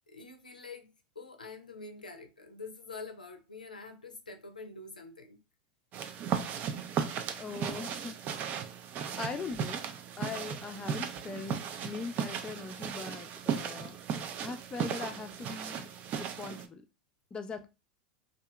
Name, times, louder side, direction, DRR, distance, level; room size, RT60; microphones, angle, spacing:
voice 1, 0.1-5.4, left 3 dB, 90° left, 0.5 m, -46 dB
sound 1, 5.9-16.7, right 7 dB, 40° right, 0.4 m, -36 dB
voice 2, 7.4-8.2 9.2-9.8 10.2-14.0 14.4-15.9 16.2-16.8 17.3-17.7, left 4 dB, 20° left, 0.4 m, -40 dB
2.7 x 2.4 x 2.2 m
figure-of-eight pair, 85°, 4 cm